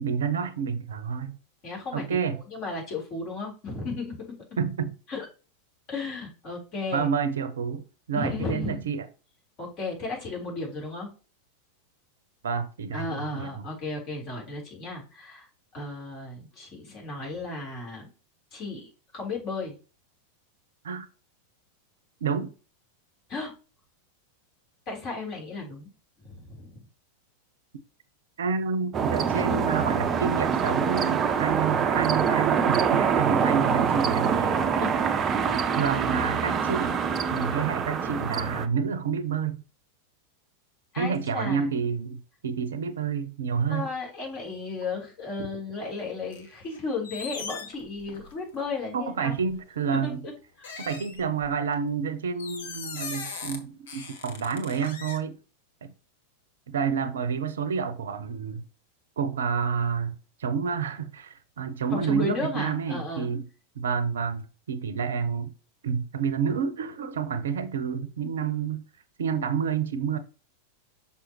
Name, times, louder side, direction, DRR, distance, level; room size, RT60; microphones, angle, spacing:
voice 1, 0.0-1.4 1.9-2.4 4.6-4.9 6.9-9.1 12.4-13.5 20.8-21.1 22.2-22.5 28.4-34.6 35.8-37.0 37.3-39.6 41.0-43.9 48.9-50.2 50.8-55.4 55.8-55.9 56.7-58.6 59.2-60.1 60.4-63.4 63.8-65.5 65.8-68.8 69.2-70.2, right 6 dB, 65° right, 0.7 m, -29 dB
voice 2, 1.6-2.2 2.5-4.2 5.1-5.3 5.9-7.1 8.1-8.9 9.6-11.1 12.9-15.5 15.7-18.1 18.5-19.7 23.3-23.5 24.9-25.9 26.2-26.8 34.8-34.9 40.9-41.7 43.7-49.3 50.0-50.3 50.6-50.7 61.9-63.3, left 3 dB, 40° left, 3.9 m, -34 dB
sound 1, 28.9-38.7, right 6 dB, 25° right, 0.6 m, -25 dB
sound 2, 46.3-46.8 47.0-48.6 49.4-49.6 50.6-51.7 52.4-53.6 53.9-55.2, left 5 dB, 60° left, 1.3 m, -39 dB
6.2 x 5.7 x 3.0 m
figure-of-eight pair, 90°, 0 cm